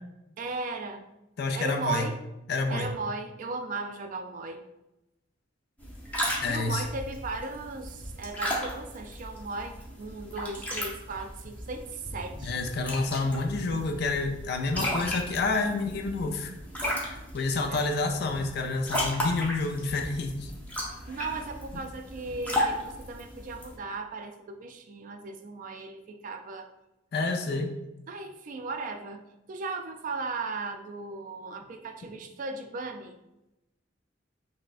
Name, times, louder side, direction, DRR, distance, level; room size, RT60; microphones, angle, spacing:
voice 1, 0.4-1.0 1.6-2.2 2.7-4.6 6.5-12.6 17.7-17.9 21.1-26.7 27.5-27.7 28.1-33.2, right 3 dB, 45° right, 6 dB, 0.3 m, -37 dB
voice 2, 1.4-2.1 2.5-2.9 6.4-6.8 12.4-16.5 17.1-20.5 27.1-27.7, left 3 dB, 60° left, 5 dB, 0.4 m, -29 dB
sound 1, 5.8-23.8, equal, 10° left, 0.7 m, -35 dB
5.4 x 2.1 x 2.5 m, 0.93 s
head